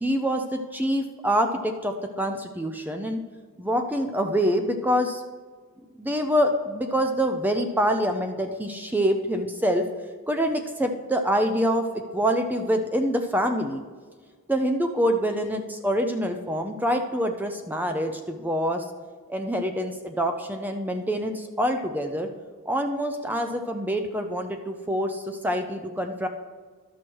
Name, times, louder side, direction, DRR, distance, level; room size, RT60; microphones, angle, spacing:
voice 1, 0.0-3.2 3.6-5.2 6.0-9.9 10.3-13.8 14.5-18.8 19.3-22.3 22.7-26.3, equal, 10° right, 6 dB, 0.5 m, -26 dB
12.0 x 6.2 x 4.6 m, 1.5 s
head